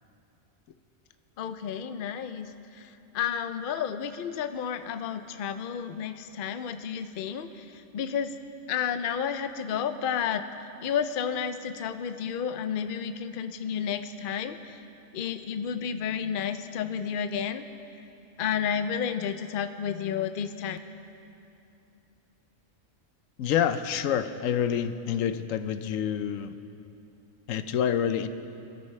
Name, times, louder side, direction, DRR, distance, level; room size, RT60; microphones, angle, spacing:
voice 1, 1.4-2.5 2.8-2.9 3.1-8.3 8.7-10.4 10.8-14.8 15.1-17.6 18.4-20.8, left 8 dB, 55° left, 9 dB, 0.7 m, -31 dB
voice 2, 23.4-26.6 27.5-28.3, left 8 dB, 90° left, 11 dB, 1.0 m, -27 dB
24.0 x 13.0 x 3.2 m, 2.8 s
omnidirectional pair, 1.3 m